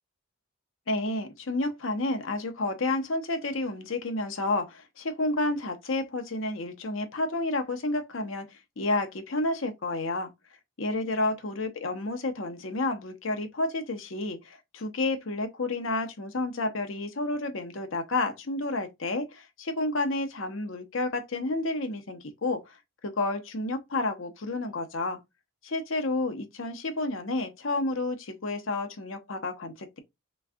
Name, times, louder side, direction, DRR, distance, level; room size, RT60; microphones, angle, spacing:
voice 1, 0.9-8.5 8.8-10.3 10.8-22.8 23.0-25.2 25.6-30.0, left 2 dB, 70° left, 0.8 m, -30 dB
3.5 x 3.1 x 2.2 m
head